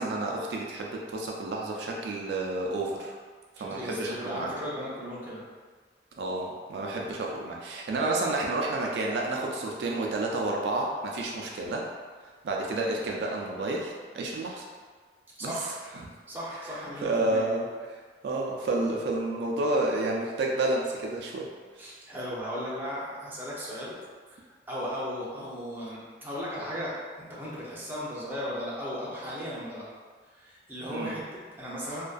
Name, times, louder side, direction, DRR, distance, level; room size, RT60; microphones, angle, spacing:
voice 1, 0.0-3.1 3.6-4.5 6.2-11.9 12.4-14.7 15.4-15.8 17.0-21.5 30.9-31.1, right 2 dB, 70° right, -1 dB, 0.3 m, -30 dB
voice 2, 3.6-5.4 6.9-7.1 15.4-15.7 16.3-17.4 21.8-24.0 24.3-29.9 30.3-32.0, equal, 10° right, -7 dB, 0.5 m, -36 dB
2.5 x 2.2 x 2.3 m, 1.5 s
head